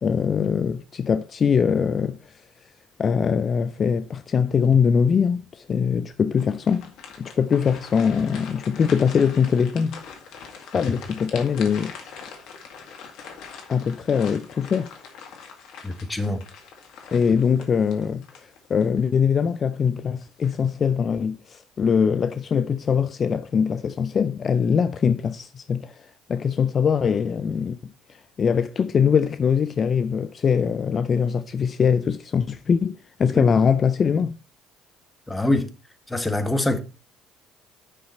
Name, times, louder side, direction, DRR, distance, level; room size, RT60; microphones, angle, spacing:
voice 1, 0.0-2.4 3.0-6.8 7.2-10.0 10.7-11.9 13.7-14.9 17.1-34.4, left 6 dB, 40° left, 0.5 m, -22 dB
sound 1, 6.3-19.0 19.5-19.6 20.2-20.7, left 6 dB, 65° left, 2.0 m, -42 dB
voice 2, 15.8-16.4 33.3-33.4 35.3-35.7 36.1-36.8, left 1 dB, 10° left, 1.7 m, -24 dB
9.9 x 6.2 x 4.3 m
hypercardioid pair, 60°, 0 cm